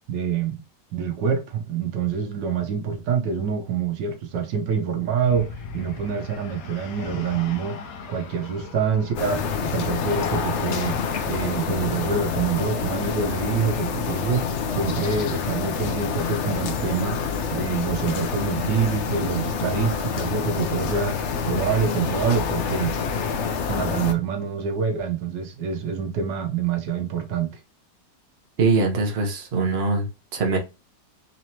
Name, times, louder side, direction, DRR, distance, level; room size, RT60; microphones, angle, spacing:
voice 1, 0.1-0.6 0.9-11.0 11.3-22.9 23.6-27.5, right 6 dB, 85° right, 1.5 m, -26 dB
sound 1, 5.2-12.5, left 5 dB, 60° left, 1.1 m, -39 dB
sound 2, 9.2-24.1, left 6 dB, 80° left, 0.6 m, -27 dB
voice 2, 28.6-30.6, right 3 dB, 45° right, 1.0 m, -22 dB
4.1 x 3.0 x 2.8 m
omnidirectional pair, 1.9 m